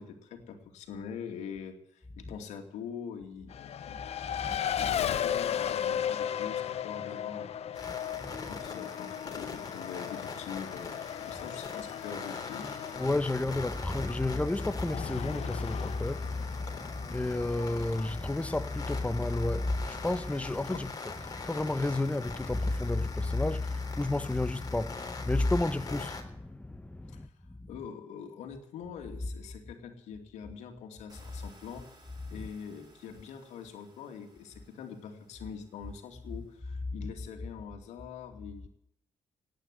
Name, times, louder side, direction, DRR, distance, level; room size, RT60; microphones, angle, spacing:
voice 1, 0.0-4.0 4.4-8.0 8.4-12.7 20.7-20.8 27.1-27.3 27.7-31.8 32.3-38.7, left 7 dB, 80° left, 2.5 m, -44 dB
Race car auto racing, 3.5-22.6, left 9 dB, 65° left, 1.0 m, -37 dB
voice 2, 4.4-5.0 7.9-8.0 8.2-8.6 11.4-11.5 12.9-27.3 27.7-27.8 32.3-32.5 36.9-37.1, left 2 dB, 10° left, 1.0 m, -31 dB
sound 1, 7.7-26.2, left 4 dB, 35° left, 3.6 m, -44 dB
sound 2, 31.1-36.6, right 2 dB, 35° right, 6.9 m, -61 dB
18.0 x 9.4 x 7.6 m
supercardioid pair, 60°, 12 cm